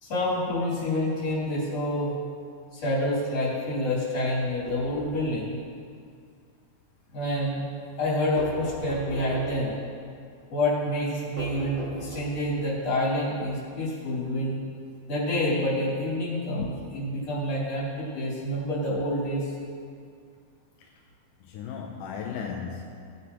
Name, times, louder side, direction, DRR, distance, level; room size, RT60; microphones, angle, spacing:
voice 1, 0.0-2.1 2.7-5.6 7.1-7.6 8.0-9.8 10.5-14.6 15.1-19.5, left 1 dB, 40° left, -7 dB, 4.1 m, -28 dB
sound 1, 4.4-5.4 8.4-9.7 11.4-12.5, right 1 dB, 55° right, 1.2 m, -38 dB
voice 2, 21.4-22.8, left 6 dB, 75° left, 0 dB, 2.1 m, -35 dB
18.5 x 9.4 x 3.0 m, 2.3 s
omnidirectional pair, 4.5 m